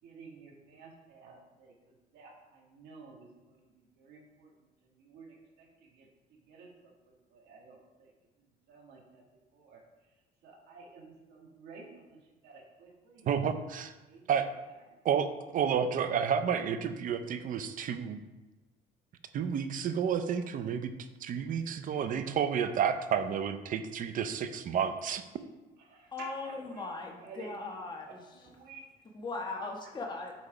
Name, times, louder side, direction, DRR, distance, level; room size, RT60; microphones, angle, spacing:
voice 1, 0.0-8.1 8.4-9.2 9.5-13.6 14.1-14.3 14.7-15.0 25.8-26.9 27.2-27.8 28.3-28.9, right 4 dB, 80° right, -1 dB, 1.7 m, -53 dB
voice 2, 13.3-13.9 14.3-14.5 15.0-18.2 19.3-20.9 21.2-25.2, right 7 dB, 55° right, 10 dB, 0.6 m, -30 dB
voice 3, 26.1-28.2 29.1-30.3, left 3 dB, 25° left, 0 dB, 1.2 m, -39 dB
8.2 x 3.3 x 4.8 m, 1.1 s
cardioid pair, 110°, 17 cm